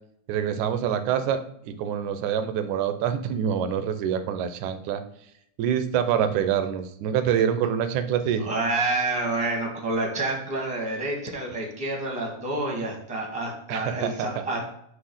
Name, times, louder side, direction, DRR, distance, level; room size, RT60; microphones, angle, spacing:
voice 1, 0.3-5.0 5.6-8.5 13.7-14.3, right 8 dB, 75° right, 9 dB, 2.0 m, -26 dB
voice 2, 8.4-14.6, right 2 dB, 5° right, 0 dB, 0.9 m, -28 dB
7.7 x 3.2 x 6.3 m, 0.72 s
omnidirectional pair, 3.7 m